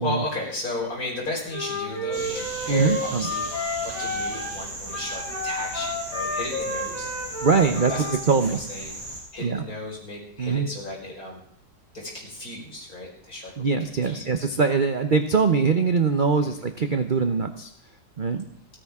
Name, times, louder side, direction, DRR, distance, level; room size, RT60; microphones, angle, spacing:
voice 1, 0.0-3.5 3.8-7.1 7.6-8.9 9.3-11.4 11.9-13.7 14.0-14.3 16.4-16.6, left 2 dB, 50° left, -2 dB, 5.5 m, -34 dB
Wind instrument woodwind instrument, 1.5-4.6 4.9-8.3, left 2 dB, 85° left, 4.8 m, -31 dB
sound 1, 2.1-9.2, right 1 dB, 85° right, 6.7 m, -37 dB
voice 2, 2.7-3.3 7.4-8.6 9.4-9.6 10.4-10.7 13.6-17.7 18.2-18.4, right 5 dB, 50° right, 8 dB, 0.6 m, -22 dB
30.0 x 10.0 x 3.6 m, 0.64 s
omnidirectional pair, 2.0 m